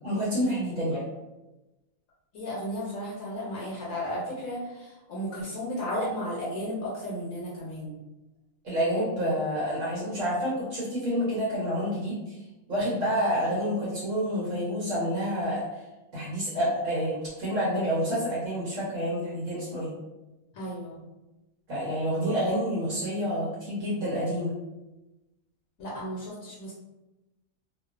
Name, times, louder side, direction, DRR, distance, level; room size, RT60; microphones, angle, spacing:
voice 1, 0.0-1.0 8.6-12.4 12.7-15.6 16.1-19.9 21.7-24.5, equal, 70° right, -7 dB, 1.1 m, -28 dB
voice 2, 2.3-8.0 20.5-21.0 25.8-26.7, equal, 75° left, -5 dB, 1.0 m, -34 dB
2.5 x 2.3 x 2.4 m, 1.0 s
omnidirectional pair, 1.5 m